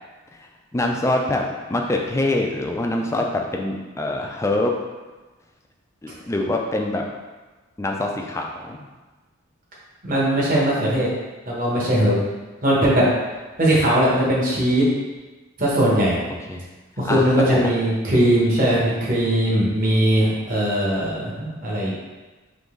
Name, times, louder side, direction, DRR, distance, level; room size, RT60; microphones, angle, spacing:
voice 1, 0.7-1.4 1.7-4.7 6.0-7.0 7.8-8.9 16.5-16.6 17.0-17.7, left 2 dB, 15° left, 1 dB, 0.3 m, -24 dB
voice 2, 10.0-11.1 11.5-12.2 12.6-13.0 13.6-14.8 15.6-16.2 17.0-21.9, right 1 dB, 40° right, -5 dB, 1.1 m, -19 dB
3.8 x 2.9 x 3.6 m, 1.2 s
head